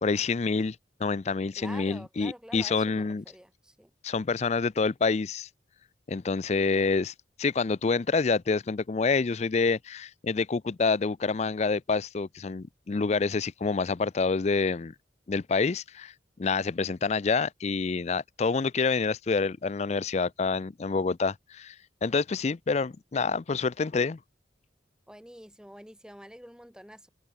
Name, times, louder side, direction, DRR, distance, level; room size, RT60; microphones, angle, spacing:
voice 1, 0.0-3.2 4.0-5.5 6.1-14.9 15.3-16.1 16.4-21.8 22.0-24.2, left 4 dB, 35° left, 0.4 m, -27 dB
voice 2, 1.6-3.9 25.1-27.1, equal, 5° right, 5.5 m, -47 dB
head